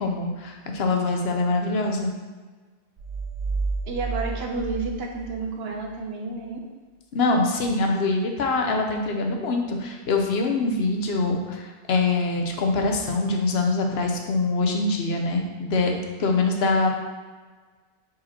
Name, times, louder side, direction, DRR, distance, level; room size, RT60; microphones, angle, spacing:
voice 1, 0.0-2.1 7.1-16.9, left 3 dB, 75° left, 2 dB, 1.0 m, -24 dB
sound 1, 3.0-5.9, right 3 dB, 45° right, 1.5 m, -31 dB
voice 2, 3.8-6.6, right 3 dB, 75° right, 1 dB, 1.1 m, -30 dB
5.0 x 4.4 x 4.2 m, 1.4 s
omnidirectional pair, 1.1 m